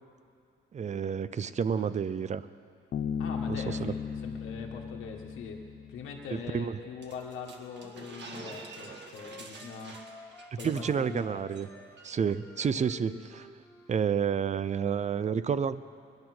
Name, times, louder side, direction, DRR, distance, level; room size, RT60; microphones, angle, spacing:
voice 1, 0.7-2.5 3.5-3.9 6.3-6.8 10.6-11.7 12.0-13.5 13.9-15.8, right 7 dB, 35° right, 15 dB, 0.6 m, -30 dB
Bass guitar, 2.9-6.5, left 7 dB, 60° left, 0.8 m, -36 dB
voice 2, 3.2-5.6 5.9-10.0 10.5-11.2 11.7-11.9 13.1-13.2, left 5 dB, 85° left, 1 dB, 1.6 m, -42 dB
sound 1, 7.0-11.2 11.5-11.7 12.0-12.4, right 3 dB, 60° right, 2.1 m, -47 dB
Wind instrument woodwind instrument, 7.5-10.5 10.8-14.1, left 1 dB, 15° left, 1.6 m, -51 dB
21.0 x 10.5 x 6.1 m, 2.4 s
cardioid pair, 90°, 20 cm